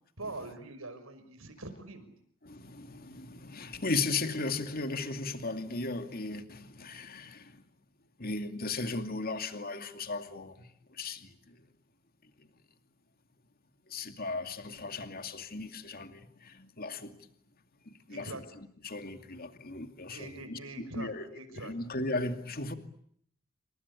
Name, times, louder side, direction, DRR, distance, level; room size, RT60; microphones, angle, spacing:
voice 1, 0.2-2.1 18.1-18.4 20.1-21.7, right 2 dB, 75° right, 5.7 m, -43 dB
voice 2, 2.4-7.5 8.2-10.7 11.0-11.3 13.9-17.2 17.9-18.3 18.8-20.6 20.9-21.3 21.6-22.7, left 3 dB, 45° left, 2.5 m, -36 dB
28.5 x 25.0 x 8.4 m
head